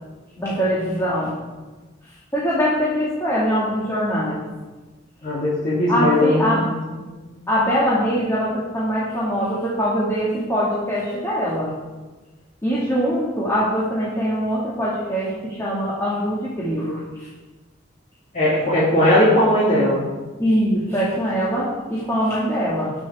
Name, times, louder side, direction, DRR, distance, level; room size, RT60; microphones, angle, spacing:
voice 1, 0.4-1.4 2.3-4.4 5.9-6.7 7.5-11.7 12.6-17.3 20.4-22.9, equal, 15° left, -8 dB, 2.2 m, -22 dB
voice 2, 5.2-6.6 7.2-7.3 18.3-20.0, left 1 dB, 40° left, -10 dB, 3.1 m, -18 dB
18.5 x 6.3 x 3.6 m, 1.2 s
head